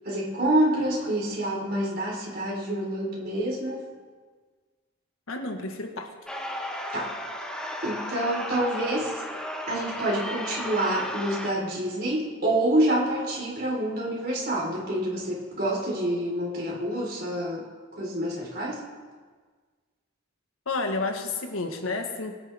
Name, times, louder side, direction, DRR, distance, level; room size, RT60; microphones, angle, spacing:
voice 1, 0.0-3.8 6.9-7.1 7.8-9.2 9.7-17.6 18.0-18.8, right 1 dB, 50° right, -4 dB, 4.5 m, -27 dB
voice 2, 5.3-6.1 20.6-22.4, left 3 dB, 85° left, 4 dB, 1.6 m, -30 dB
sound 1, 6.3-11.5, equal, 5° left, 1.2 m, -34 dB
21.5 x 10.5 x 3.6 m, 1.5 s
head